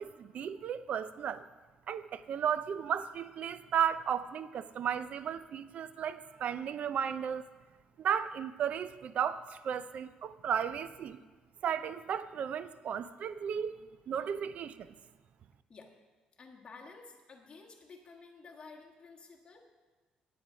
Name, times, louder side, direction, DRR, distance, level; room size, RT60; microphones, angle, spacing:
voice 1, 0.0-1.5 1.9-7.4 8.0-11.2 11.6-13.8 14.1-14.9, right 8 dB, 55° right, 0.5 m, -34 dB
voice 2, 16.4-19.6, left 4 dB, 30° left, 1.5 m, -52 dB
9.5 x 8.4 x 4.9 m
cardioid pair, 110°, 3 cm